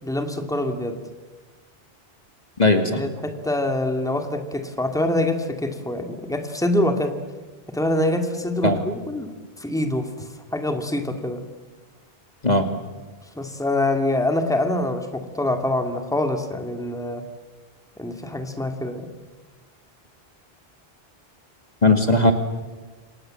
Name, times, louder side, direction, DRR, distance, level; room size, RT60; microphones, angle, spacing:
voice 1, 0.0-1.0 2.9-7.1 7.7-10.1 10.5-11.4 13.4-17.2 18.0-19.1, left 1 dB, 5° left, 5 dB, 2.4 m, -25 dB
voice 2, 2.6-3.0 8.6-8.8 12.4-12.7 21.8-22.3, left 2 dB, 40° left, 6 dB, 2.4 m, -17 dB
28.5 x 27.0 x 7.8 m, 1.3 s
omnidirectional pair, 1.0 m